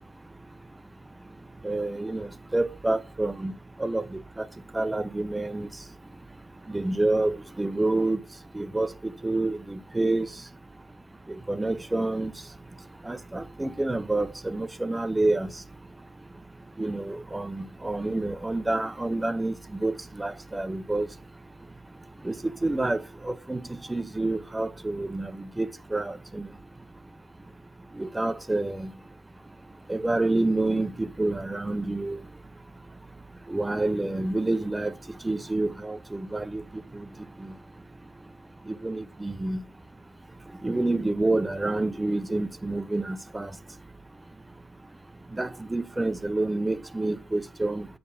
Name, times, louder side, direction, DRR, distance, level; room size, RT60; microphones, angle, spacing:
voice 1, 1.6-3.5 3.8-4.5 4.7-5.7 6.7-8.2 8.5-10.3 11.3-12.3 13.1-15.5 16.8-19.5 19.8-21.1 22.2-22.4 22.6-23.6 23.9-26.5 28.0-28.9 29.9-32.2 33.5-34.9 35.2-36.6 38.7-39.6 40.6-43.5 45.4-47.9, right 2 dB, 10° right, 0.4 m, -28 dB
8.3 x 4.5 x 5.5 m
cardioid pair, 135°, 0 cm